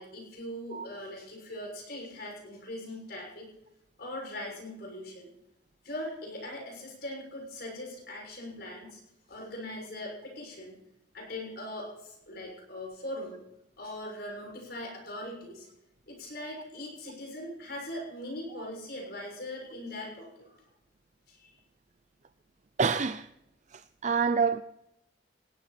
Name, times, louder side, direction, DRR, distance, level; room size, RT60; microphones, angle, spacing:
voice 1, 0.0-3.5 4.0-5.3 5.8-9.0 9.3-10.8 11.1-13.4 13.8-15.7 16.1-20.6 21.3-21.5, left 1 dB, 55° left, 6.5 m, -40 dB
voice 2, 22.8-23.3 23.7-24.6, right 5 dB, 40° right, 0.5 m, -27 dB
19.5 x 15.5 x 4.4 m
head